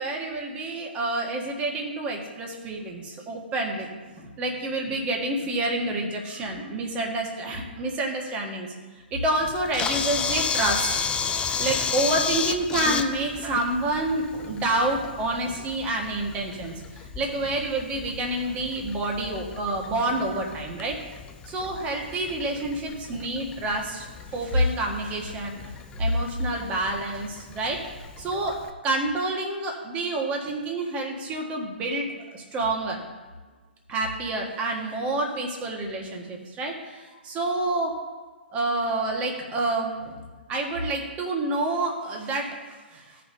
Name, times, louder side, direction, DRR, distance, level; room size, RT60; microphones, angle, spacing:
voice 1, 0.0-8.7 8.9-11.3 11.6-21.0 21.5-27.8 28.2-33.0 33.9-38.0 38.5-40.2 40.5-43.2, right 2 dB, 20° right, 1 dB, 1.6 m, -28 dB
Camera, 9.4-28.7, left 6 dB, 15° left, 0.5 m, -33 dB
16.0 x 5.6 x 2.7 m, 1.4 s
figure-of-eight pair, 120°, 6 cm